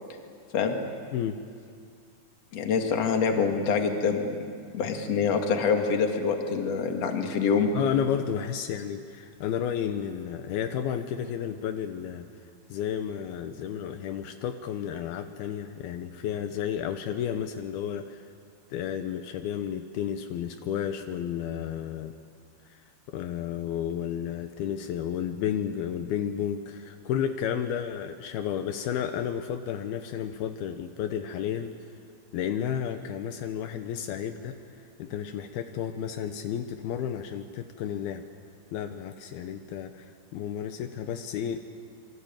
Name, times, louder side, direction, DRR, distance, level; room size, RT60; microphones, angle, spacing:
voice 1, 2.5-4.2 4.7-7.7, left 6 dB, 45° left, 3 dB, 2.9 m, -25 dB
voice 2, 7.7-12.3 12.7-18.3 18.7-22.1 22.7-22.8 23.1-31.7 32.3-34.6 35.0-38.2 38.7-40.1 40.3-41.6, left 9 dB, 80° left, 7 dB, 2.8 m, -32 dB
28.0 x 23.5 x 9.0 m, 2.2 s
omnidirectional pair, 4.5 m